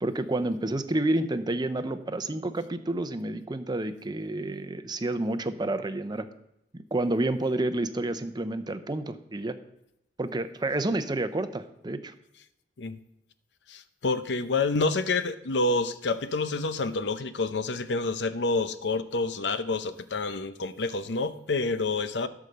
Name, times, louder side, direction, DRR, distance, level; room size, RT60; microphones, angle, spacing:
voice 1, 0.0-6.3 6.9-9.6 10.2-12.1, right 2 dB, 25° right, 10 dB, 0.6 m, -29 dB
voice 2, 13.7-22.3, left 3 dB, 85° left, 12 dB, 0.6 m, -28 dB
12.5 x 4.8 x 6.7 m, 0.83 s
head